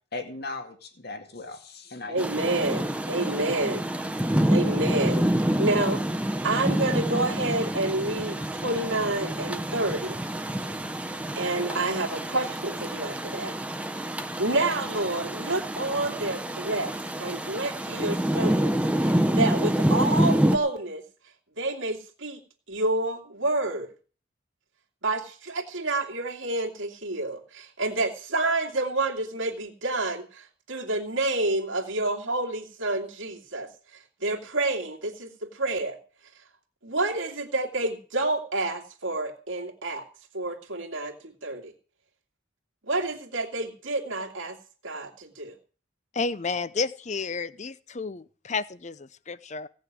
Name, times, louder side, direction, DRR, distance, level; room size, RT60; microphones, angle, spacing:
voice 1, 0.1-2.3, left 3 dB, 55° left, 5 dB, 2.2 m, -38 dB
voice 2, 2.1-3.8 4.5-5.3 5.6-6.0 6.4-10.2 11.4-13.5 14.4-16.9 17.2-18.7 19.0-21.0 21.6-22.4 22.7-23.9 25.0-33.7 34.2-36.0 36.8-40.0 40.3-41.7 42.9-44.6 44.8-45.6, right 2 dB, 90° right, 1 dB, 2.4 m, -29 dB
Rain, 2.2-20.6, right 1 dB, 5° right, 0.8 m, -27 dB
voice 3, 46.1-49.7, left 4 dB, 35° left, 16 dB, 0.6 m, -31 dB
17.0 x 6.4 x 9.2 m, 0.39 s
head